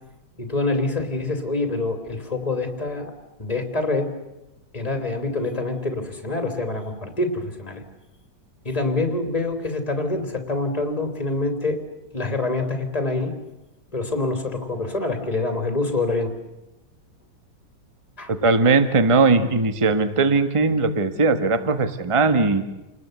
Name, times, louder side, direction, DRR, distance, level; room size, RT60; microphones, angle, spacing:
voice 1, 0.4-3.1 3.4-4.1 4.7-7.8 8.6-11.8 12.1-13.3 13.9-16.3 18.2-18.3, left 2 dB, 20° left, 7 dB, 3.2 m, -26 dB
voice 2, 18.3-22.6, right 3 dB, 20° right, 10 dB, 1.2 m, -19 dB
29.0 x 20.0 x 8.0 m, 1.0 s
omnidirectional pair, 2.1 m